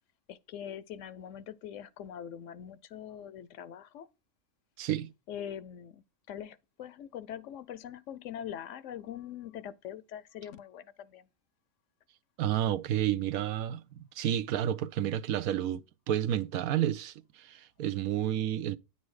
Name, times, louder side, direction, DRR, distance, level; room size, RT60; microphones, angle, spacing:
voice 1, 0.3-4.1 5.3-11.3, left 9 dB, 70° left, 0.9 m, -43 dB
voice 2, 4.8-5.1 12.4-13.8 14.2-18.8, right 11 dB, 90° right, 1.1 m, -30 dB
9.8 x 4.1 x 4.8 m
omnidirectional pair, 1.5 m